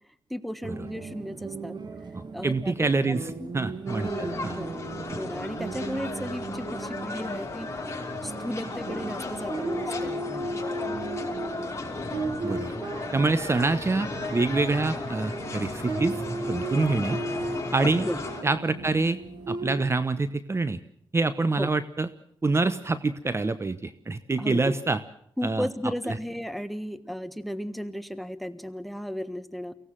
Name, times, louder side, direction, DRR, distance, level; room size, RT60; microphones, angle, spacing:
voice 1, 0.3-1.8 2.3-3.7 4.0-4.8 5.2-7.7 8.2-10.6 18.0-18.3 21.6-21.7 24.4-24.7 25.4-29.7, equal, ahead, 13 dB, 1.5 m, -35 dB
sound 1, 0.6-19.8, right 3 dB, 50° right, 2.1 m, -36 dB
voice 2, 2.1-4.6 5.1-5.2 12.4-12.7 13.1-17.2 17.7-18.1 18.4-19.2 19.5-20.8 21.1-22.1 22.4-25.0 25.4-25.7 26.1-26.2, right 3 dB, 30° right, 13 dB, 1.1 m, -26 dB
sound 2, 3.9-18.4, left 3 dB, 30° left, 5.6 m, -35 dB
24.0 x 17.0 x 7.6 m, 0.67 s
cardioid pair, 75°, 9 cm